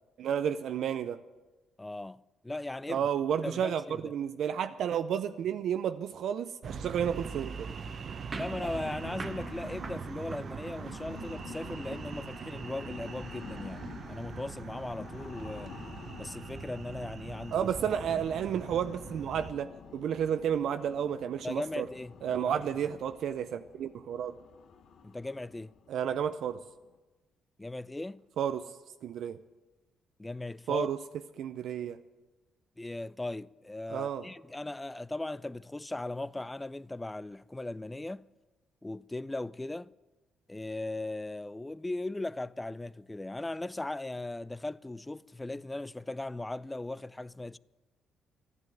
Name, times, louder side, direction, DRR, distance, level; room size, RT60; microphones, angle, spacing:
voice 1, 0.2-1.2 2.9-7.7 17.5-21.9 22.2-24.4 25.9-26.6 28.4-29.4 30.7-31.0 31.4-32.0 33.9-34.3, right 8 dB, 70° right, 0.5 m, -32 dB
voice 2, 1.8-3.1 3.4-4.1 8.3-15.8 16.2-17.7 18.1-18.2 21.4-22.1 22.5-22.6 25.0-25.7 27.6-28.2 30.2-30.9 32.8-38.3 38.8-39.9 40.5-47.6, left 2 dB, 15° left, 0.4 m, -38 dB
sound 1, 6.6-19.5, right 5 dB, 50° right, 0.9 m, -42 dB
sound 2, 8.3-26.9, left 7 dB, 65° left, 1.3 m, -49 dB
sound 3, 8.3-11.2, right 4 dB, 35° right, 1.1 m, -44 dB
13.5 x 11.0 x 8.9 m
cardioid pair, 90°, 0 cm